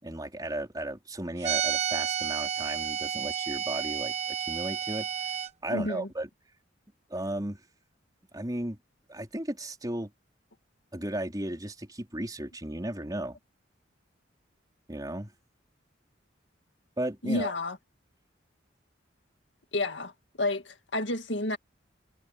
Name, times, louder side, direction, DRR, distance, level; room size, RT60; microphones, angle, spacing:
voice 1, 0.0-5.1 5.6-6.3 7.1-7.6 8.3-8.8 9.1-10.1 10.9-13.4 14.9-15.3 17.0-17.5, right 1 dB, 20° right, 3.9 m, -35 dB
sound 1, 1.4-5.5, right 9 dB, 35° right, 0.8 m, -31 dB
voice 2, 5.7-6.1 17.2-17.8 19.7-20.1 20.4-21.6, left 2 dB, 70° left, 2.1 m, -30 dB
head